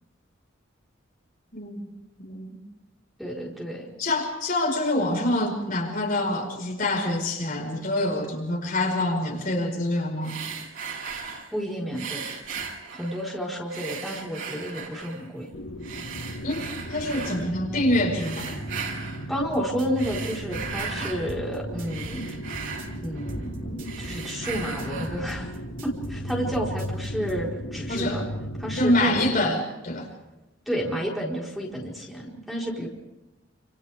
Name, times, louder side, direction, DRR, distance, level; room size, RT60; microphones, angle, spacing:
voice 1, 1.5-1.9 2.2-2.5 4.0-10.4 16.4-18.6 27.9-28.2 28.7-30.1, left 1 dB, 45° left, 1 dB, 5.2 m, -26 dB
voice 2, 3.2-3.9 11.5-12.3 12.9-15.5 19.3-22.4 23.0-25.5 25.8-28.2 28.6-29.5 30.7-32.9, equal, ahead, -3 dB, 4.5 m, -31 dB
sound 1, 10.2-11.5 11.9-13.3 13.7-15.3 15.8-17.4 18.1-19.3 19.8-21.2 21.6-23.5 23.8-25.2, right 5 dB, 90° right, 6.3 m, -37 dB
sound 2, 15.5-29.3, equal, 80° left, 7.6 m, -36 dB
sound 3, 19.5-27.4, right 1 dB, 45° right, 3.5 m, -42 dB
28.5 x 27.5 x 3.6 m, 1.0 s
head